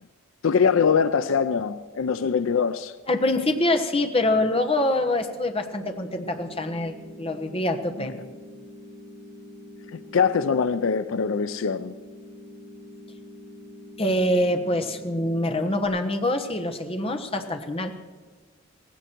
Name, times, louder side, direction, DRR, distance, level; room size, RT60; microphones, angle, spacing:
voice 1, 0.4-2.9 9.9-11.9, left 6 dB, 70° left, 0.5 m, -23 dB
voice 2, 3.1-8.2 14.0-17.9, left 1 dB, 25° left, 1.2 m, -25 dB
sound 1, 5.9-15.9, left 1 dB, 60° right, 4.2 m, -45 dB
18.0 x 16.5 x 4.5 m
head